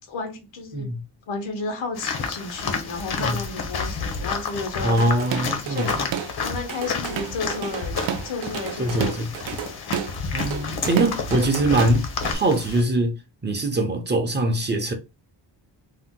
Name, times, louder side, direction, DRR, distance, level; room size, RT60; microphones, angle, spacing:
voice 1, 0.1-0.9 1.3-5.0 5.7-5.9 6.4-8.0 8.2-9.3, left 3 dB, 90° left, 1.0 m, -32 dB
voice 2, 0.7-1.0 3.2-3.4 4.8-6.0 8.8-9.3 10.3-12.1 12.3-14.9, right 1 dB, 25° right, 0.5 m, -23 dB
sound 1, 2.0-12.8, left 5 dB, 60° left, 0.8 m, -30 dB
Drum kit / Drum, 5.0-6.4 6.7-12.3, right 8 dB, 75° right, 0.6 m, -31 dB
2.8 x 2.1 x 3.5 m
wide cardioid pair, 120°, 44 cm